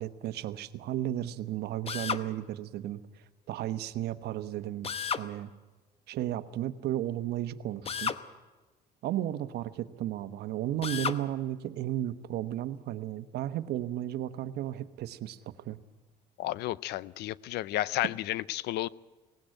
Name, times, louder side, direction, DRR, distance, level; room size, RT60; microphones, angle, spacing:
voice 1, 0.0-3.0 3.5-4.9 5.2-5.5 6.1-8.1 9.0-15.4 15.6-15.8, right 12 dB, 75° right, 1.0 m, -34 dB
Drill, 1.9-2.3 4.8-5.3 7.9-8.2 10.8-11.2, left 6 dB, 35° left, 0.9 m, -32 dB
voice 2, 16.4-18.9, left 15 dB, 75° left, 0.6 m, -32 dB
18.5 x 17.0 x 9.0 m
cardioid pair, 110°, 17 cm